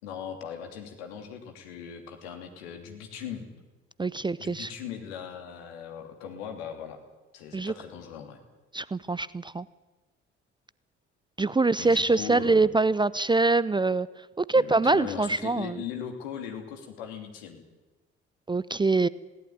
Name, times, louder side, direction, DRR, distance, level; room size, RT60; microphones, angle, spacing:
voice 1, 0.0-3.5 4.4-7.0 7.3-8.4 11.8-12.7 14.5-17.6, left 8 dB, 70° left, 5 dB, 3.0 m, -39 dB
voice 2, 4.0-4.7 7.5-7.7 8.7-9.6 11.4-14.1 14.4-15.7 18.5-19.1, right 3 dB, 15° right, 19 dB, 0.6 m, -24 dB
20.5 x 17.5 x 9.4 m, 1.2 s
figure-of-eight pair, 50°, 33 cm